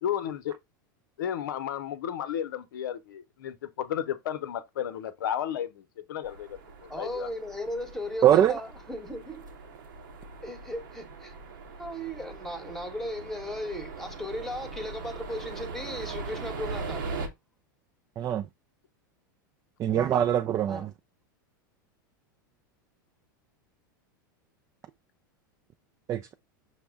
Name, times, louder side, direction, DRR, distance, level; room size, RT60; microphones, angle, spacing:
voice 1, 0.0-0.5 1.2-7.3, left 9 dB, 75° left, 0.7 m, -33 dB
sound 1, 6.2-17.3, right 4 dB, 80° right, 0.9 m, -40 dB
voice 2, 6.9-9.5 10.4-11.3 11.8-17.3 20.6-20.9, left 1 dB, 5° left, 1.0 m, -36 dB
voice 3, 8.2-8.5 18.2-18.4 19.8-20.9 26.1-26.3, right 10 dB, 30° right, 0.3 m, -23 dB
5.9 x 2.1 x 3.5 m
hypercardioid pair, 105°, 11 cm